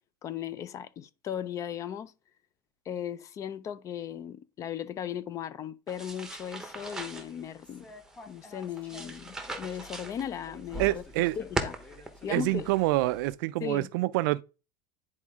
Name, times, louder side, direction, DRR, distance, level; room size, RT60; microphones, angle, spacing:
voice 1, 0.2-2.1 2.9-7.9 8.3-11.0 11.4-11.7 12.2-12.7 13.6-13.9, left 9 dB, 30° left, 0.4 m, -37 dB
sound 1, 5.9-13.3, right 2 dB, 5° right, 1.0 m, -40 dB
sound 2, 7.6-13.2, left 2 dB, 10° left, 1.2 m, -51 dB
voice 2, 10.8-11.4 12.3-14.4, right 19 dB, 70° right, 0.4 m, -27 dB
9.8 x 4.2 x 3.6 m
supercardioid pair, 150°, 11 cm